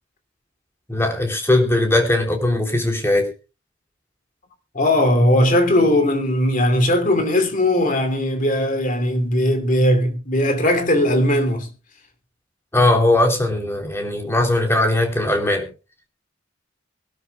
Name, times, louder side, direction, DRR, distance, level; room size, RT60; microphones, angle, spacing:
voice 1, 0.9-3.3 12.7-15.6, left 1 dB, 10° left, 3.4 m, -19 dB
voice 2, 4.7-11.7, left 1 dB, 40° left, 2.9 m, -18 dB
24.0 x 12.5 x 2.3 m
head